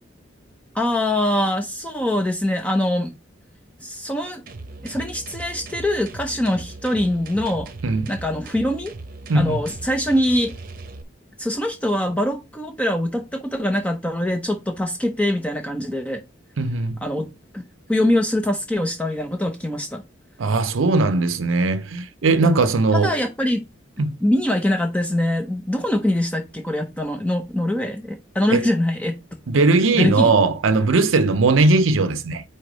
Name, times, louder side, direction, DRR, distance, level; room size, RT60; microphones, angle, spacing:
voice 1, 0.7-3.1 3.8-4.4 4.8-7.7 8.1-8.9 9.3-10.5 11.4-16.2 17.0-17.6 17.9-20.0 22.4-22.6 22.9-23.6 24.2-29.2 29.9-30.3, left 1 dB, 5° left, 0.6 m, -23 dB
sound 1, 4.5-11.0, right 2 dB, 45° right, 0.8 m, -38 dB
voice 2, 9.3-9.6 16.6-17.0 20.4-23.2 24.0-24.1 28.5-28.7 29.5-32.4, right 3 dB, 80° right, 0.6 m, -19 dB
4.8 x 4.3 x 5.0 m
head